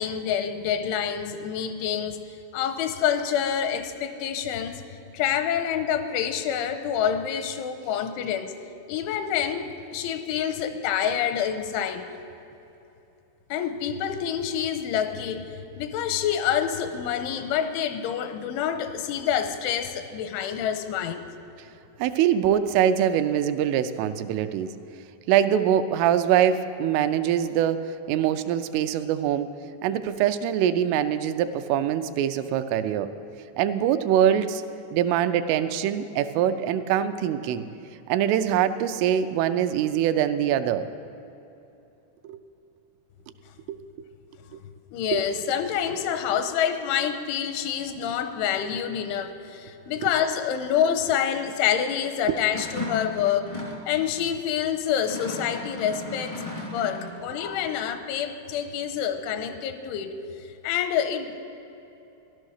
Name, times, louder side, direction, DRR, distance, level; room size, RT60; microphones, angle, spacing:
voice 1, 0.0-2.2 2.5-4.8 5.1-8.5 8.9-12.1 13.5-15.5 15.8-21.2 44.9-53.5 53.9-60.2 60.6-61.4, left 9 dB, 85° left, 9 dB, 3.0 m, -27 dB
voice 2, 22.0-24.7 25.3-29.6 29.8-33.1 33.6-34.6 34.9-37.6 38.1-40.9 42.2-42.4 43.7-43.8 44.5-44.6 45.1-45.2 52.3-52.4, right 10 dB, 90° right, 9 dB, 3.2 m, -23 dB
sound 1, 52.5-53.8 54.9-57.2, left 2 dB, 50° left, 0.3 m, -35 dB
15.5 x 11.5 x 6.5 m, 2.8 s
omnidirectional pair, 5.6 m